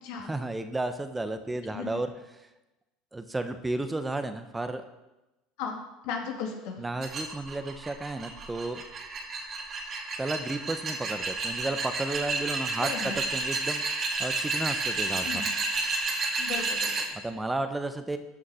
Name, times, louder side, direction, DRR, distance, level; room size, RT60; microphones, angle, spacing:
voice 1, 0.2-2.1 3.1-4.9 6.8-8.8 10.2-15.4 17.2-18.2, right 2 dB, 10° right, 9 dB, 0.9 m, -33 dB
voice 2, 6.0-6.8 12.8-13.2 15.2-15.5 16.4-17.2, left 6 dB, 70° left, 2 dB, 2.5 m, -36 dB
sound 1, 7.0-17.1, right 3 dB, 40° right, 2.2 m, -31 dB
13.0 x 6.4 x 5.7 m, 0.99 s
supercardioid pair, 100°, 0 cm